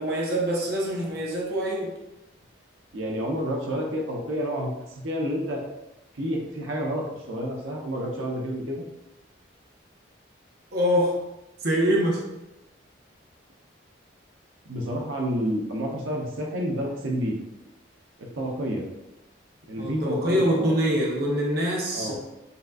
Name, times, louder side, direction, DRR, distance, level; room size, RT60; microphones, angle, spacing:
voice 1, 0.0-1.9 10.7-11.2 11.6-12.3 19.8-22.2, equal, 55° right, -3 dB, 0.8 m, -24 dB
voice 2, 2.9-4.7 5.0-5.6 6.1-8.8 14.7-17.3 18.2-18.8 19.7-20.7 21.9-22.2, equal, 85° right, -1 dB, 0.8 m, -29 dB
6.8 x 2.6 x 2.3 m, 0.94 s
head